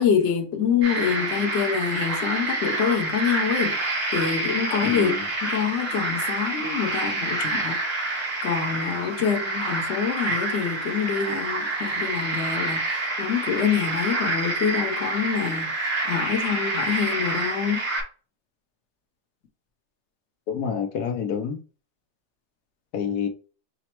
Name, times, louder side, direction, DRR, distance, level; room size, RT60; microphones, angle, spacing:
voice 1, 0.0-5.1 5.4-7.7 8.1-17.8, left 7 dB, 55° left, 1.0 m, -26 dB
sound 1, 0.8-18.0, right 2 dB, 75° right, 2.6 m, -28 dB
voice 2, 4.8-5.2 20.5-21.6 22.9-23.3, left 7 dB, 85° left, 1.2 m, -28 dB
5.1 x 2.0 x 4.4 m
omnidirectional pair, 1.6 m